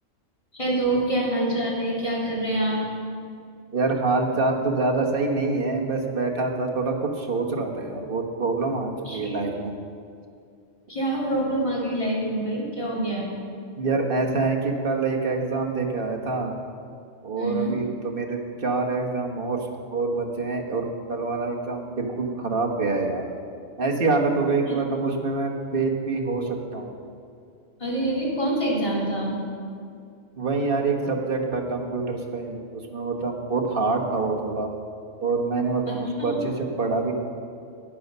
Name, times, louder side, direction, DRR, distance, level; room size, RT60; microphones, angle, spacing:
voice 1, 0.5-2.8 9.0-9.4 10.9-13.2 17.4-17.7 24.7-24.8 27.8-29.4 35.9-36.4, right 1 dB, 25° left, -5 dB, 2.8 m, -26 dB
voice 2, 3.7-9.7 13.8-16.5 17.2-19.6 19.9-23.3 23.8-27.0 30.4-34.7 35.2-37.1, right 3 dB, 45° right, 1 dB, 1.3 m, -26 dB
12.0 x 9.4 x 5.5 m, 2.3 s
omnidirectional pair, 1.3 m